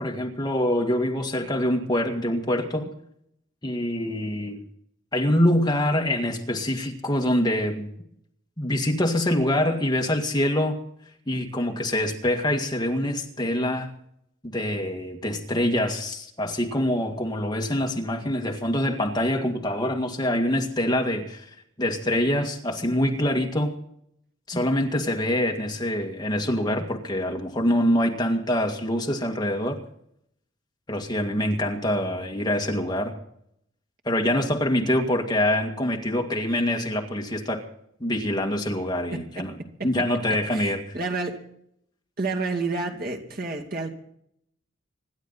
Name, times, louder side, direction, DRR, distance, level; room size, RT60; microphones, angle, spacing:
voice 1, 0.0-2.9 3.6-4.6 5.1-7.9 8.6-10.8 11.3-13.9 14.4-21.5 21.8-23.7 24.5-29.8 30.9-33.2 34.1-37.6 38.0-39.5 39.8-41.0, left 1 dB, 20° left, 2.0 m, -25 dB
voice 2, 39.1-39.4 40.5-41.4 42.2-43.9, right 3 dB, 50° right, 2.5 m, -30 dB
26.0 x 11.5 x 4.1 m
head